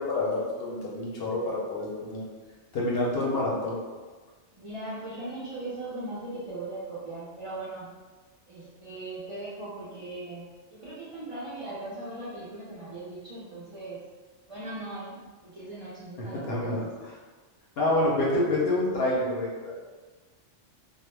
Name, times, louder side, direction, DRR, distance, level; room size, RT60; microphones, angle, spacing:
voice 1, 0.0-2.3 2.7-3.8 16.2-17.2 17.8-19.7, left 1 dB, 65° left, -4 dB, 0.8 m, -28 dB
voice 2, 4.6-7.9 8.5-14.0 14.5-16.8 18.0-18.1, right 2 dB, 45° right, -9 dB, 0.4 m, -39 dB
2.3 x 2.0 x 3.1 m, 1.3 s
omnidirectional pair, 1.2 m